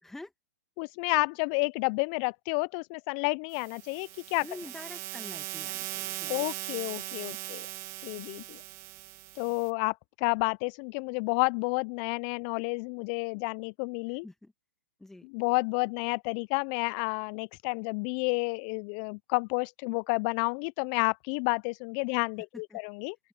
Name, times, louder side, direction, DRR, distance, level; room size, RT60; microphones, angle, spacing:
voice 1, 0.8-4.5 6.3-7.7 8.0-8.6 9.4-14.3 15.3-23.2, left 34 dB, 40° left, 0.5 m, -30 dB
sound 1, 3.5-9.7, right 20 dB, 35° right, 1.6 m, -39 dB
voice 2, 4.4-6.3 7.3-7.4 14.2-14.5 15.0-15.3 22.7-22.8, left 2 dB, 5° left, 2.1 m, -46 dB
open air
figure-of-eight pair, 110°, 8 cm